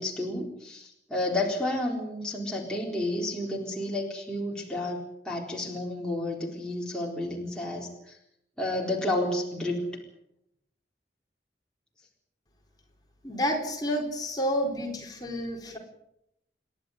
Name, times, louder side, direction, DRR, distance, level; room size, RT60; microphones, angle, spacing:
voice 1, 0.0-8.1 8.6-9.9, left 1 dB, 5° left, -3 dB, 4.0 m, -31 dB
voice 2, 13.2-15.8, equal, 20° left, 0 dB, 4.1 m, -30 dB
30.0 x 11.5 x 9.4 m, 0.80 s
head